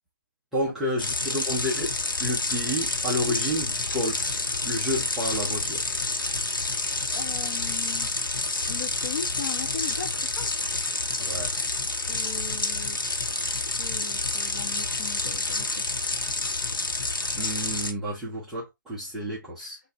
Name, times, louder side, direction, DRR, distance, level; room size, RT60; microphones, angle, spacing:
voice 1, 0.5-1.9 2.2-5.8 11.2-11.5 17.4-19.8, equal, ahead, 0.4 m, -30 dB
sound 1, 1.0-17.9, left 3 dB, 90° left, 1.2 m, -29 dB
voice 2, 7.1-8.1 8.7-10.5 12.1-13.0 13.6-15.8 19.6-19.7, left 6 dB, 40° left, 1.3 m, -38 dB
5.7 x 2.5 x 2.6 m
hypercardioid pair, 170°, 11 cm